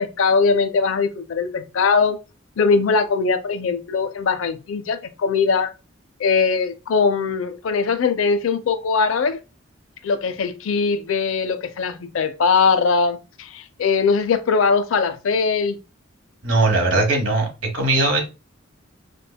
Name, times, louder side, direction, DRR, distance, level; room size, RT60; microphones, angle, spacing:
voice 1, 0.0-2.2 2.6-5.7 6.2-9.4 10.0-15.8, left 5 dB, 85° left, 0.4 m, -21 dB
voice 2, 16.4-18.2, right 2 dB, 70° right, 1.2 m, -19 dB
5.2 x 2.2 x 2.2 m
head